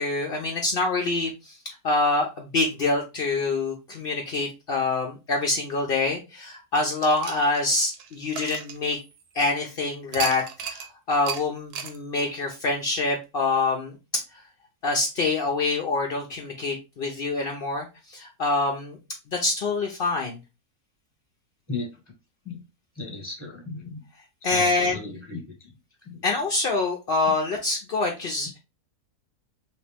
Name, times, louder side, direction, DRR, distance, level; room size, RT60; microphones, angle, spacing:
voice 1, 0.0-9.0 9.3-14.0 14.3-14.4 14.8-19.0 19.3-20.4 24.4-25.0 26.2-28.6, left 3 dB, 85° left, 2 dB, 0.5 m, -26 dB
sound 1, 7.0-9.4 10.1-10.9 11.3-11.4 11.7-12.0, right 7 dB, 75° right, 1.1 m, -34 dB
voice 2, 23.0-24.0 24.5-25.7 26.1-26.2, left 3 dB, 10° right, 0 dB, 0.7 m, -35 dB
3.0 x 2.9 x 3.2 m, 0.27 s
omnidirectional pair, 1.7 m